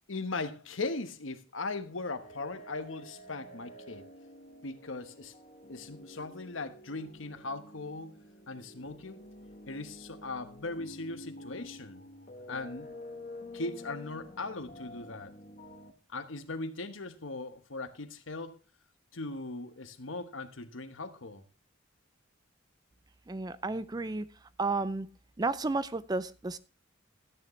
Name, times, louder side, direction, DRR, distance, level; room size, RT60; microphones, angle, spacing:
voice 1, 0.1-4.0 4.6-5.3 5.7-8.2 8.5-9.2 9.7-12.0 12.5-12.9 13.5-15.3 16.1-18.6 19.1-21.4, left 3 dB, 85° left, 1.2 m, -39 dB
sound 1, 2.2-15.9, left 1 dB, 40° left, 1.1 m, -49 dB
voice 2, 23.3-24.3 24.6-25.1 25.4-26.6, right 3 dB, 20° right, 0.4 m, -32 dB
13.5 x 9.4 x 3.1 m
head